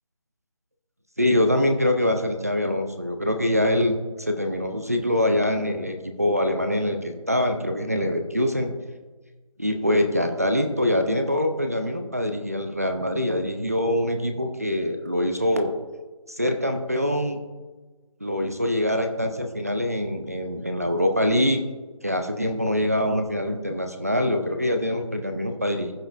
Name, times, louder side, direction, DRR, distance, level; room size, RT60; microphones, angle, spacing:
voice 1, 1.2-8.7 9.6-15.7 16.3-17.4 18.2-21.6 22.0-25.9, left 1 dB, 25° right, 4 dB, 0.4 m, -24 dB
15.5 x 5.1 x 2.5 m, 1.3 s
figure-of-eight pair, 175°, 18 cm